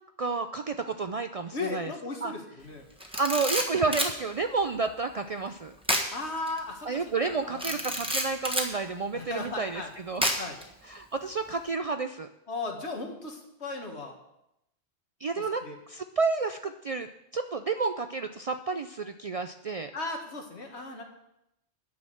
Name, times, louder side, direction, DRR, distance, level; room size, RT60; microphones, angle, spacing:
voice 1, 0.2-1.9 2.2-2.3 3.2-5.8 6.9-10.3 10.8-12.3 15.2-19.9, right 4 dB, 55° right, 8 dB, 0.4 m, -30 dB
voice 2, 1.5-2.9 6.1-7.8 9.1-9.9 10.4-10.6 12.5-14.2 15.4-15.8 19.9-21.0, left 3 dB, 85° left, 2 dB, 1.9 m, -36 dB
Camera, 3.0-4.2 5.8-6.1 6.5-6.6 7.6-8.7 10.2-10.6, equal, 5° right, 1.3 m, -28 dB
9.4 x 6.3 x 7.6 m, 0.83 s
omnidirectional pair, 1.1 m